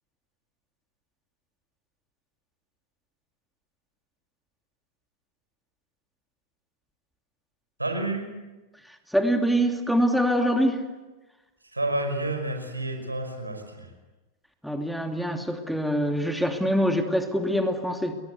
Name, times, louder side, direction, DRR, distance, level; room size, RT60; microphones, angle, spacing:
voice 1, 7.8-8.3 11.7-13.9, right 2 dB, 85° right, 5 dB, 5.3 m, -29 dB
voice 2, 9.1-10.8 14.6-18.1, equal, ahead, 5 dB, 2.8 m, -24 dB
30.0 x 23.0 x 8.2 m, 1.2 s
figure-of-eight pair, 90°, 0 cm